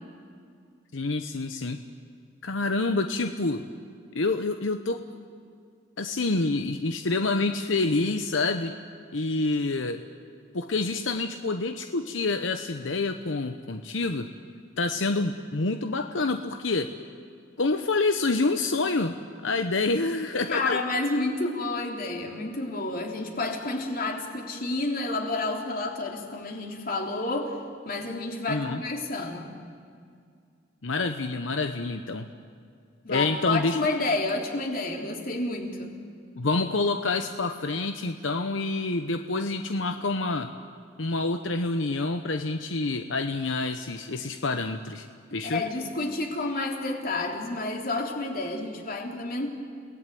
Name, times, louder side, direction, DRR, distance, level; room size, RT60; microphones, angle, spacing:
voice 1, 0.9-1.8 2.4-3.6 4.1-5.0 6.0-8.7 9.1-10.0 10.5-14.3 14.8-16.9 17.6-19.2 19.4-20.8 28.5-28.8 30.8-32.3 33.1-33.8 36.4-40.5 41.0-45.1 45.3-45.6, left 3 dB, 85° left, 7 dB, 1.0 m, -27 dB
voice 2, 20.5-27.6 27.8-29.5 33.0-36.0 45.4-49.5, left 2 dB, 50° left, 2 dB, 3.4 m, -30 dB
30.0 x 18.5 x 9.3 m, 2.2 s
head